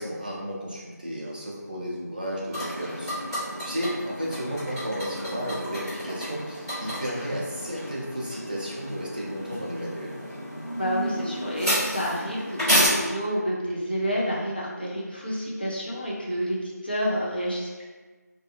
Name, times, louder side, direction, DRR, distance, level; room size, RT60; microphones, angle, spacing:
voice 1, 0.0-3.1 3.6-10.2, equal, 30° right, -4 dB, 0.4 m, -33 dB
sound 1, 2.5-12.9, equal, ahead, 1.1 m, -31 dB
voice 2, 10.8-17.9, equal, 35° left, -4 dB, 0.4 m, -29 dB
2.5 x 2.3 x 2.7 m, 1.3 s
figure-of-eight pair, 175°, 10 cm